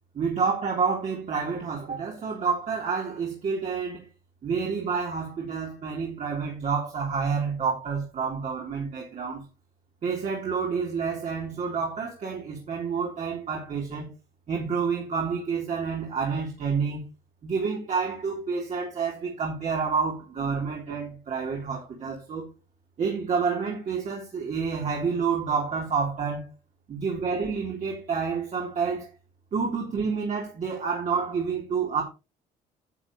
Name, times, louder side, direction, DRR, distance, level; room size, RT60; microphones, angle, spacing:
voice 1, 0.1-4.1 4.4-9.4 10.0-14.1 14.5-17.1 17.4-22.5 23.0-26.5 26.9-29.1 29.5-32.0, right 5 dB, 45° right, 3.5 m, -29 dB
11.0 x 7.9 x 3.1 m
cardioid pair, 110°, 17 cm